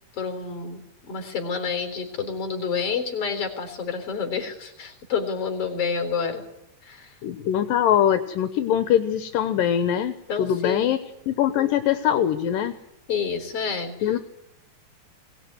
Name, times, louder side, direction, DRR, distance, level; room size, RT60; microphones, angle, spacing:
voice 1, 0.1-6.4 6.8-7.1 10.3-10.9 13.1-14.2, left 6 dB, 45° left, 7 dB, 4.5 m, -29 dB
voice 2, 7.2-11.0 11.3-12.7 14.0-14.2, left 10 dB, 75° left, 10 dB, 2.7 m, -22 dB
23.0 x 18.0 x 9.6 m, 0.84 s
omnidirectional pair, 4.0 m